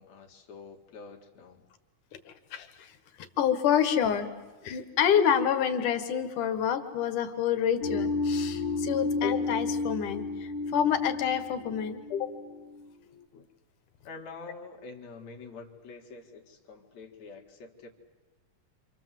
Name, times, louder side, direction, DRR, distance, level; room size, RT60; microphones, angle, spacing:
voice 1, 0.0-1.6 14.0-17.9, left 4 dB, 65° left, 2 dB, 3.3 m, -46 dB
voice 2, 2.3-2.9 3.4-4.3 4.6-12.3 13.3-13.4, left 8 dB, 85° left, 9 dB, 3.1 m, -28 dB
sound 1, 7.8-12.8, left 3 dB, 45° left, 2.3 m, -32 dB
27.5 x 27.0 x 7.7 m, 1.2 s
omnidirectional pair, 3.5 m